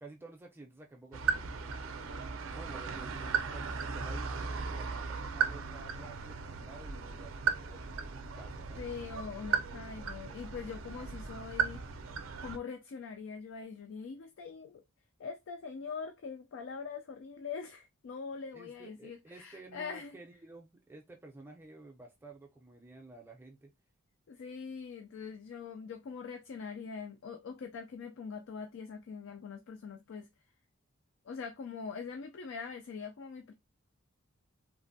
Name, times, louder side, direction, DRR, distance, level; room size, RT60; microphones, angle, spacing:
voice 1, 0.0-2.3 2.5-8.8 18.5-23.7, right 2 dB, 10° right, 0.5 m, -52 dB
sound 1, 1.1-12.6, right 6 dB, 65° right, 0.4 m, -36 dB
voice 2, 8.8-11.8 12.4-14.8 15.2-20.2 24.3-30.3 31.2-33.5, left 5 dB, 60° left, 0.3 m, -43 dB
3.3 x 2.1 x 2.6 m
head